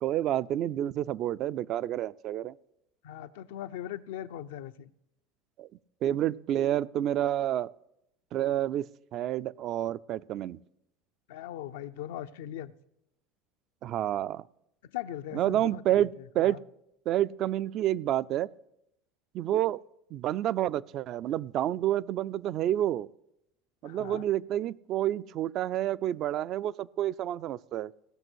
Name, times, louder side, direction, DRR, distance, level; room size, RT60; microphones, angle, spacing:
voice 1, 0.0-2.5 5.6-5.7 6.0-7.7 8.3-10.6 13.8-14.4 15.3-16.6 17.1-18.5 19.3-19.8 20.1-23.1 23.8-27.9, right 12 dB, 50° right, 17 dB, 0.3 m, -29 dB
voice 2, 3.0-4.9 11.3-12.7 14.9-16.1 16.4-16.6 23.8-24.2, left 12 dB, 80° left, 11 dB, 0.5 m, -40 dB
17.0 x 6.1 x 6.2 m, 0.81 s
supercardioid pair, 105°, 0 cm